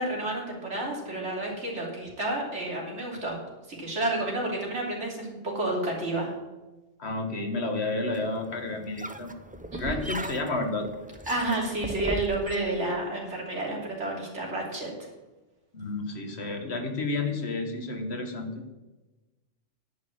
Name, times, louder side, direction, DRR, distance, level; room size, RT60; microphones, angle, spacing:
voice 1, 0.0-3.4 3.7-6.3 9.7-10.0 11.3-14.9, right 2 dB, 90° right, -2 dB, 3.4 m, -30 dB
voice 2, 7.0-9.3 9.7-10.9 15.7-18.7, left 2 dB, 70° left, 4 dB, 1.8 m, -31 dB
sound 1, 8.1-12.6, right 2 dB, 15° right, 0.3 m, -37 dB
10.5 x 6.4 x 8.6 m, 1.1 s
omnidirectional pair, 1.2 m